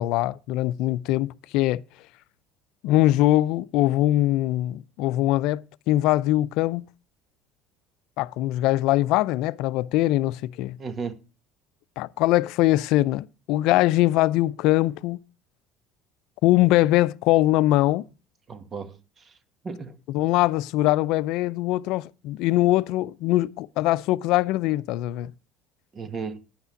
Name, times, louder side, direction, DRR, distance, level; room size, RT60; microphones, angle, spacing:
voice 1, 0.0-1.8 2.8-6.8 8.2-10.8 12.0-15.2 16.4-18.1 20.1-25.3, left 16 dB, 70° left, 0.5 m, -22 dB
voice 2, 10.8-11.2 18.5-19.4 19.6-20.0 25.9-26.4, right 5 dB, 35° right, 1.6 m, -35 dB
10.5 x 5.7 x 7.0 m
supercardioid pair, 90°, 0 cm